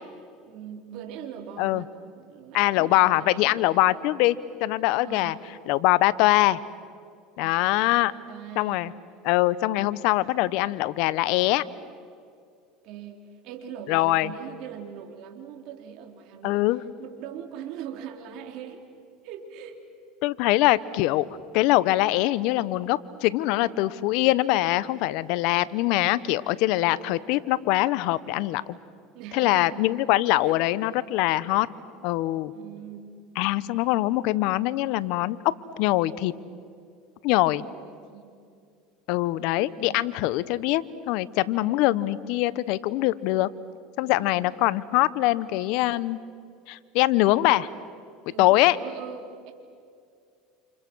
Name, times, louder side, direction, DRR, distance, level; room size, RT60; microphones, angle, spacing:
voice 1, 0.4-4.0 5.0-5.4 7.4-8.9 12.8-18.9 19.2-19.9 26.6-27.2 29.1-29.9 30.4-30.6 32.5-33.1 37.3-38.3 39.3-40.1 44.0-44.5 48.2-49.5, right 8 dB, 60° right, 4 dB, 3.8 m, -42 dB
voice 2, 2.5-5.4 5.7-6.6 7.4-8.1 8.6-8.9 9.2-11.6 13.9-14.3 16.4-16.8 20.2-21.3 21.5-28.6 29.3-31.7 32.0-32.5 33.4-35.4 35.8-36.3 37.2-37.6 39.1-43.5 44.0-46.2 46.7-47.7 48.4-48.8, left 17 dB, 65° left, 17 dB, 0.9 m, -23 dB
29.5 x 28.5 x 6.3 m, 2.3 s
supercardioid pair, 105°, 0 cm